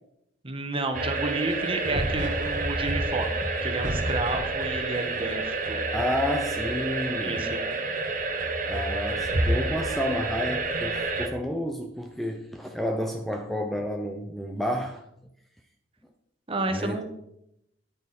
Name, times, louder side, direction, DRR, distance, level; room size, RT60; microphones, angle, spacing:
voice 1, 0.4-3.3 3.6-5.8 7.2-7.6 16.5-17.0, right 2 dB, 30° right, 6 dB, 1.4 m, -31 dB
sound 1, 0.9-11.3, right 2 dB, 45° right, 1.3 m, -28 dB
voice 2, 5.9-7.4 8.6-15.0 16.7-17.0, equal, ahead, 3 dB, 0.7 m, -30 dB
9.6 x 9.1 x 4.2 m, 0.78 s
head